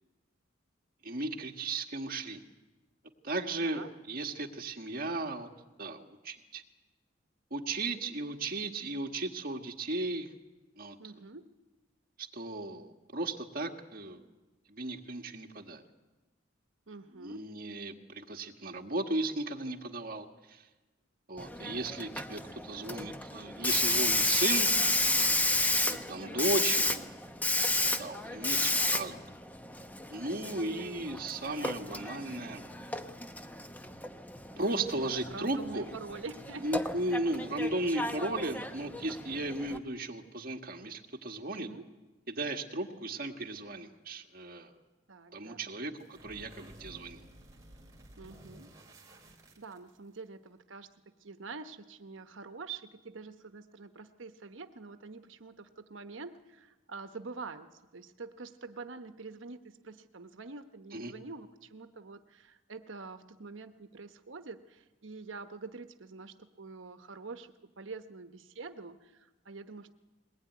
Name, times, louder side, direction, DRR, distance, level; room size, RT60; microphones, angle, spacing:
voice 1, 1.0-2.4 3.2-5.5 5.8-6.6 7.5-10.3 10.8-11.0 12.2-14.3 14.7-15.8 17.2-20.7 21.3-24.7 25.9-27.2 28.0-29.2 30.1-32.6 34.6-35.9 36.6-41.7 42.3-44.7 45.3-47.2 60.9-61.1, right 2 dB, 45° right, 4 dB, 1.8 m, -35 dB
voice 2, 11.0-11.5 16.9-17.5 26.2-26.5 35.2-36.7 37.1-37.2 41.5-41.9 45.1-45.7 48.2-48.7 49.6-69.9, right 4 dB, 75° right, 9 dB, 1.0 m, -46 dB
Hiss, 21.4-39.8, left 2 dB, 10° left, 0.9 m, -32 dB
sound 1, 46.0-50.2, right 1 dB, 15° right, 3.4 m, -54 dB
21.5 x 19.5 x 9.4 m, 1.2 s
head